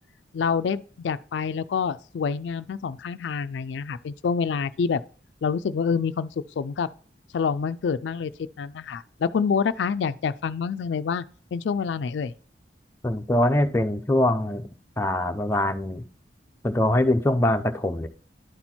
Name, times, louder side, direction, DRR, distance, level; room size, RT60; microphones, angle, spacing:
voice 1, 0.3-5.0 5.4-6.3 6.6-6.9 7.3-8.3 8.6-11.2 11.5-12.3, left 6 dB, 75° left, 0.4 m, -27 dB
voice 2, 13.0-14.6 15.0-16.0 16.6-18.1, left 1 dB, 15° left, 0.6 m, -23 dB
11.0 x 4.3 x 4.3 m
head